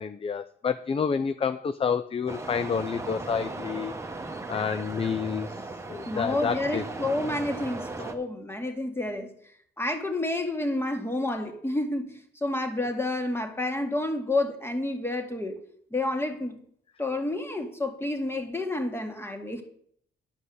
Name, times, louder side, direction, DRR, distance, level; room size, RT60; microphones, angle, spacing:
voice 1, 0.0-3.9 4.5-6.8, left 6 dB, 30° left, 0.5 m, -29 dB
sound 1, 2.3-8.1, right 2 dB, 15° right, 1.2 m, -37 dB
voice 2, 6.1-9.3 9.8-15.6 15.9-16.6 17.0-19.6, left 2 dB, 10° left, 1.9 m, -29 dB
10.0 x 5.3 x 8.0 m
cardioid pair, 90°, 20 cm